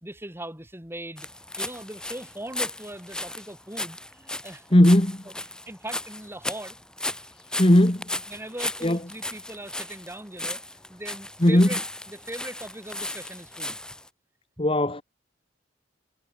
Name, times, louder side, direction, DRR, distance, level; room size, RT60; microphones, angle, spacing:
voice 1, 0.0-1.3 1.6-4.7 5.7-6.8 8.3-13.8, right 1 dB, 10° right, 3.2 m, -39 dB
sound 1, 1.2-14.1, left 1 dB, 5° left, 1.1 m, -35 dB
voice 2, 4.7-5.2 7.6-8.1 8.8-9.0 11.4-11.7 14.6-15.0, left 1 dB, 30° left, 1.6 m, -17 dB
head